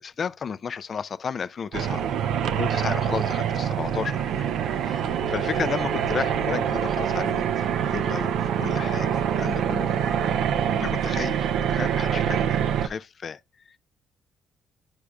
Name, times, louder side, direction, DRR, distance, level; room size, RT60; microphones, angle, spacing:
voice 1, 0.0-2.0 2.6-4.5 4.8-9.9 10.8-13.4 13.7-13.8, left 6 dB, 50° left, 0.4 m, -33 dB
sound 1, 1.7-12.9, right 8 dB, 80° right, 0.5 m, -25 dB
9.7 x 5.0 x 2.3 m
cardioid pair, 90°, 0 cm